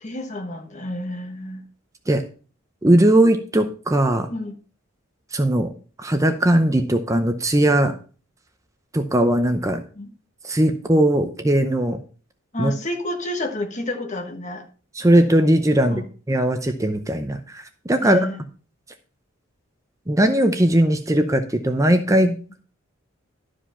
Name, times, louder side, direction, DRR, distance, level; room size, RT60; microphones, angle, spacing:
voice 1, 0.0-1.6 4.3-4.5 10.0-10.1 12.5-14.7 15.8-16.1 18.0-18.4, left 1 dB, 35° left, 1.3 m, -30 dB
voice 2, 2.8-4.3 5.3-5.7 6.0-7.9 8.9-9.8 10.4-12.0 12.6-12.7 14.9-16.0 16.3-18.3 20.1-22.3, right 1 dB, 15° right, 0.7 m, -19 dB
12.0 x 5.1 x 5.6 m
head